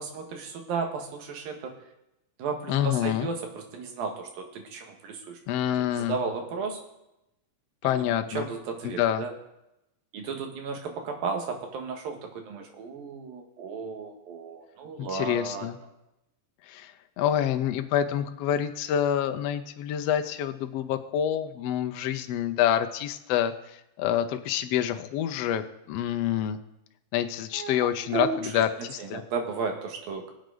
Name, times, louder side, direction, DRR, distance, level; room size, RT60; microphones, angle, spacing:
voice 1, 0.0-1.7 2.4-5.4 5.9-6.8 7.8-9.3 10.1-15.7 27.5-27.8 28.0-28.6 29.0-30.3, right 5 dB, 90° right, 3 dB, 3.5 m, -34 dB
voice 2, 2.7-3.3 5.5-6.2 7.8-8.5 8.8-9.2 15.1-15.8 16.6-26.6 27.1-29.2, left 10 dB, 90° left, 8 dB, 1.4 m, -27 dB
22.0 x 8.0 x 4.0 m, 0.87 s
omnidirectional pair, 4.0 m